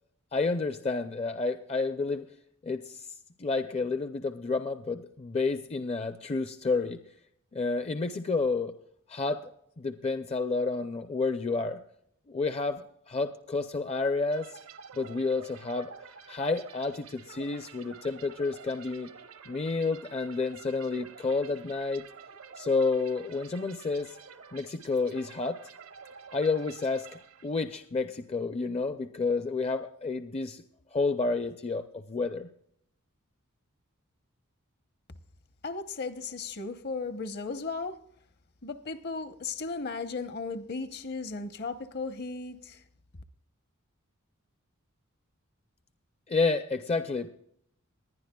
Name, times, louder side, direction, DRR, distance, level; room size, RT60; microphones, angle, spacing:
voice 1, 0.3-2.2 2.6-3.1 3.4-7.0 7.5-8.7 9.1-9.5 9.8-11.8 12.3-14.6 15.0-15.9 16.3-19.1 19.5-22.1 22.6-24.2 24.5-25.6 26.3-27.1 27.4-30.6 30.9-32.5 46.3-47.3, left 3 dB, 30° left, 0.5 m, -30 dB
sound 1, 14.3-27.9, right 6 dB, 80° right, 1.0 m, -49 dB
voice 2, 35.6-38.0 38.6-42.8, left 4 dB, 50° left, 0.8 m, -36 dB
20.5 x 11.0 x 2.3 m
head